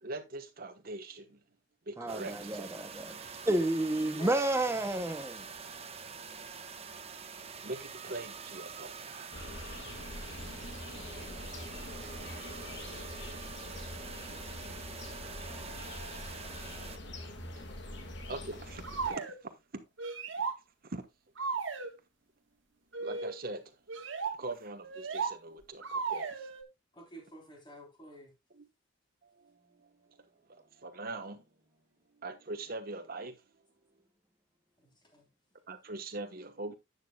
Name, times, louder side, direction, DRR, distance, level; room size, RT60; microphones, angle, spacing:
voice 1, 0.0-1.4 1.9-2.7 7.6-9.3 18.3-19.2 20.8-21.0 23.0-23.6 24.4-26.5 28.6-28.7 29.2-29.5 30.8-31.4 32.2-33.3 35.7-36.7, right 2 dB, 50° right, 1.2 m, -42 dB
voice 2, 2.0-3.1 3.5-5.4, right 1 dB, 15° right, 0.6 m, -30 dB
sound 1, 2.1-17.0, right 5 dB, 35° right, 1.0 m, -46 dB
voice 3, 3.9-4.8 26.9-28.3 34.8-35.3, equal, 25° left, 3.5 m, -49 dB
sound 2, 9.3-19.1, left 1 dB, 65° left, 1.8 m, -44 dB
sound 3, 18.8-19.4 20.0-20.6 21.4-21.9 22.9-23.4 23.9-24.4 24.8-25.4 25.8-26.6, right 5 dB, 80° right, 1.4 m, -35 dB
11.0 x 8.4 x 2.3 m
head